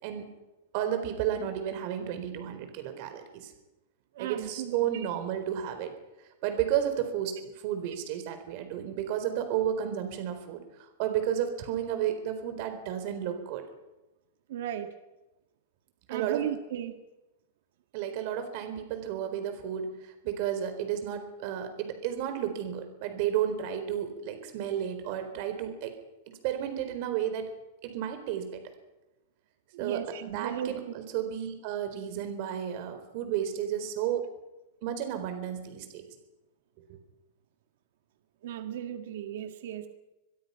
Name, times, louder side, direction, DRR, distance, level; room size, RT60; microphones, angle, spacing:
voice 1, 0.7-3.5 4.2-5.9 6.4-10.6 11.0-13.7 16.1-16.4 17.9-25.9 26.3-27.5 27.8-28.6 29.8-30.0 30.3-34.2 34.8-36.0 36.9-37.0, right 10 dB, 45° right, 8 dB, 4.1 m, -32 dB
voice 2, 4.1-5.1 14.5-14.9 16.1-17.0 29.7-30.7 38.4-39.9, right 10 dB, 65° right, 7 dB, 1.8 m, -35 dB
24.0 x 21.5 x 5.8 m, 0.99 s
supercardioid pair, 165°, 0 cm